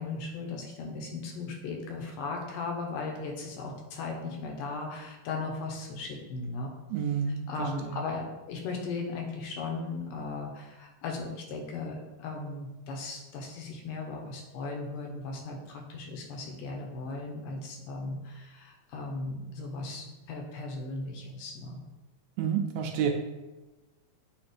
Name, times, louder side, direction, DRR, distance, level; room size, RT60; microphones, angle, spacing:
voice 1, 0.0-6.7 7.5-21.8, left 3 dB, 80° left, 1 dB, 2.4 m, -37 dB
voice 2, 6.9-8.0 22.4-23.2, right 7 dB, 85° right, 3 dB, 1.6 m, -30 dB
7.5 x 2.5 x 5.1 m, 1.1 s
omnidirectional pair, 3.8 m